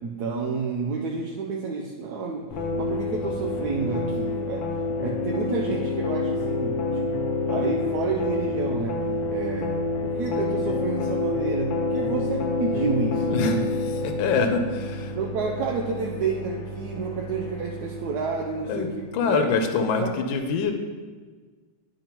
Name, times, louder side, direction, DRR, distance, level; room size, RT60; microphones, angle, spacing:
voice 1, 0.0-4.7 5.0-9.0 9.3-13.6 15.1-18.9 19.2-20.1, right 4 dB, 70° right, 0 dB, 1.0 m, -30 dB
sound 1, 2.5-19.2, left 3 dB, 60° left, 1.3 m, -28 dB
voice 2, 13.3-13.6 13.9-15.1 18.7-18.9 19.1-20.7, left 5 dB, 80° left, 6 dB, 1.4 m, -24 dB
10.5 x 5.3 x 2.9 m, 1.5 s
omnidirectional pair, 2.1 m